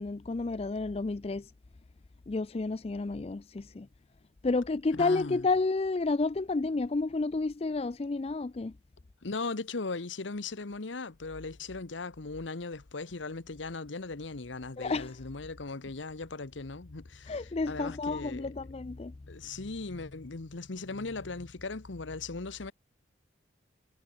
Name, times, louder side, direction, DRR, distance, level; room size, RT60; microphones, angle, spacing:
voice 1, 0.0-1.5 2.3-3.9 4.4-8.7 14.8-15.1 17.3-19.1, left 3 dB, 30° left, 0.4 m, -31 dB
voice 2, 4.9-5.5 9.2-18.5 19.3-22.7, left 3 dB, 80° left, 1.1 m, -38 dB
head